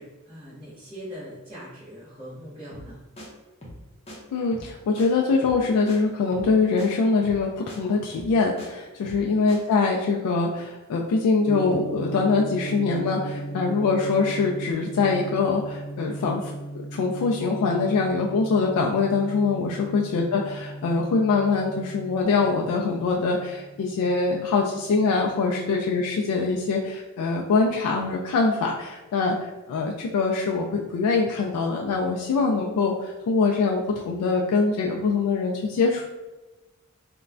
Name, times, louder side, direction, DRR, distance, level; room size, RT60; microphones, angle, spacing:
voice 1, 0.0-3.0 19.7-20.0 25.5-25.7, equal, 25° right, -14 dB, 1.1 m, -42 dB
sound 1, 2.7-2.9 3.2-3.3 3.6-4.2 4.5-4.7 5.0-5.1 5.4-5.6 5.9-6.0 6.3-6.5 6.8-6.9 7.2-7.4 7.7-7.8 8.1-8.7 9.0-9.2 9.5-9.6, equal, 25° left, 0.6 m, -41 dB
voice 2, 4.3-16.5 16.9-29.4 29.7-36.0, left 4 dB, 85° left, 1 dB, 0.3 m, -23 dB
Gong, 11.5-25.6, right 2 dB, 90° right, 0.8 m, -37 dB
3.1 x 2.1 x 2.4 m, 1.1 s
head